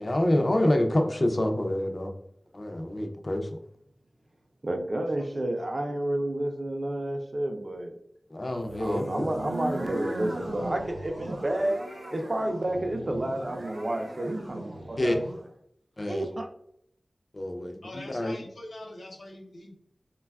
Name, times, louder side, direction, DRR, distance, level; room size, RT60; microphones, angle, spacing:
voice 1, 0.0-2.1 2.5-3.6 8.3-9.3 15.0-15.2 16.0-16.3 17.3-18.4, left 1 dB, 40° left, 4 dB, 0.4 m, -27 dB
voice 2, 4.6-7.9 8.8-11.8 12.1-15.1 16.0-16.5, right 1 dB, 40° right, 4 dB, 0.4 m, -30 dB
voice 3, 5.3-5.7 17.8-19.7, left 1 dB, 90° left, -1 dB, 0.7 m, -44 dB
sound 1, 8.6-15.4, right 1 dB, 90° right, 0.7 m, -38 dB
3.2 x 2.2 x 2.2 m, 0.70 s
wide cardioid pair, 80°, 0 cm